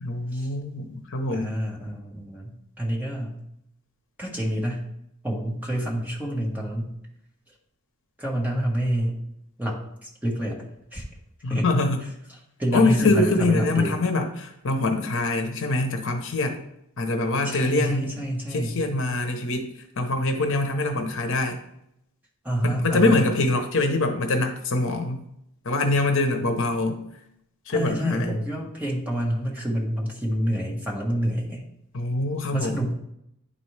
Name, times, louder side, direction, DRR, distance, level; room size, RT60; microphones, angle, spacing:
voice 1, 0.0-1.5 11.4-12.0 12.7-16.6 17.0-18.1 18.5-19.7 20.0-21.6 22.6-25.2 25.6-27.0 27.7-28.4 31.9-32.9, left 2 dB, 60° left, 5 dB, 0.8 m, -24 dB
voice 2, 1.3-3.4 4.2-4.9 5.2-6.9 8.2-9.2 9.6-10.6 10.9-11.0 11.5-11.7 12.6-14.0 17.4-18.8 22.4-23.2 27.7-31.6 32.5-32.9, right 1 dB, 10° right, -3 dB, 1.3 m, -28 dB
10.0 x 4.2 x 3.2 m, 0.78 s
head